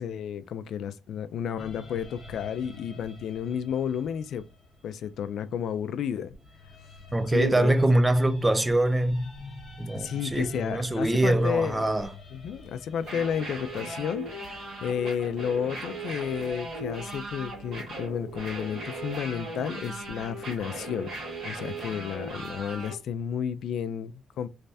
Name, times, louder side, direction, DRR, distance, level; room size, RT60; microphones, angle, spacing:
voice 1, 0.0-4.4 4.8-6.3 7.3-7.7 9.9-11.9 12.3-21.1 21.4-24.5, left 8 dB, 65° left, 0.4 m, -32 dB
sound 1, 1.6-5.8 6.3-16.4 18.3-20.2, left 2 dB, 35° left, 1.0 m, -48 dB
voice 2, 7.1-9.3 9.8-12.1, right 1 dB, 10° right, 0.3 m, -24 dB
sound 2, 13.0-22.9, right 1 dB, 60° right, 1.8 m, -38 dB
3.3 x 3.2 x 2.7 m
cardioid pair, 175°, 0 cm